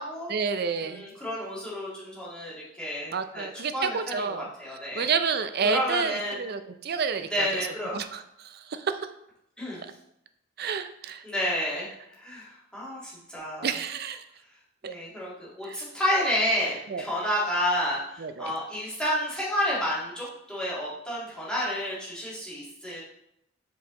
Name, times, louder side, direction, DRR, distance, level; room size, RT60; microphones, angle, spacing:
voice 1, 0.3-1.0 3.1-4.5 5.0-7.5 7.9-8.2 10.6-11.2 13.6-14.2 14.8-14.9 15.7-15.8 16.9-17.0 18.2-18.5, right 5 dB, 50° right, 9 dB, 0.5 m, -29 dB
voice 2, 0.8-5.0 5.6-6.4 7.3-8.0 9.6-9.8 11.2-11.9 12.2-12.5 12.7-13.8 14.8-23.0, equal, 5° left, -8 dB, 2.0 m, -30 dB
5.5 x 4.8 x 3.7 m, 0.79 s
head